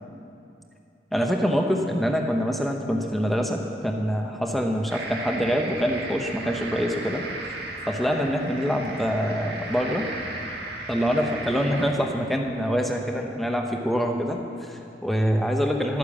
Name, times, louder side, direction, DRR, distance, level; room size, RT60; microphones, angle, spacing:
voice 1, 1.1-7.2 7.9-10.1 10.9-16.0, equal, ahead, 2 dB, 0.8 m, -25 dB
sound 1, 4.9-11.9, right 2 dB, 60° right, 1.9 m, -35 dB
12.5 x 9.9 x 7.3 m, 2.6 s
head